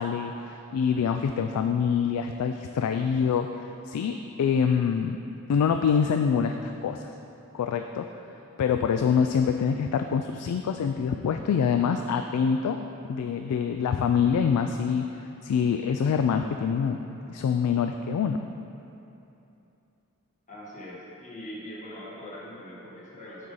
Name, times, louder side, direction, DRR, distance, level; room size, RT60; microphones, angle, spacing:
voice 1, 0.0-3.5 3.9-5.2 5.5-7.1 7.5-8.1 8.6-12.8 13.1-15.1 15.4-17.0 17.3-18.4, left 6 dB, 80° left, 6 dB, 0.3 m, -25 dB
voice 2, 20.5-23.5, equal, 35° left, -7 dB, 1.5 m, -42 dB
7.6 x 4.1 x 5.4 m, 2.9 s
head